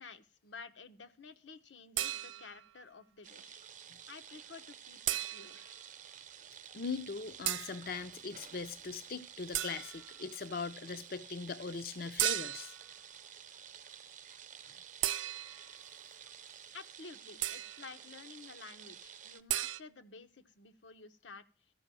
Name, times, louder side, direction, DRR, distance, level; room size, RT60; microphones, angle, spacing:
voice 1, 0.0-3.6 4.1-5.7 16.7-21.4, left 4 dB, 85° left, 0.9 m, -52 dB
sound 1, 2.0-2.7 5.1-5.7 7.5-7.8 9.5-10.1 12.2-12.8 15.0-15.7 17.4-17.9 19.5-19.8, right 13 dB, 90° right, 0.5 m, -35 dB
sound 2, 3.2-19.4, right 8 dB, 45° right, 0.8 m, -52 dB
voice 2, 6.7-12.7, left 4 dB, 55° left, 0.5 m, -40 dB
13.5 x 5.5 x 7.5 m
head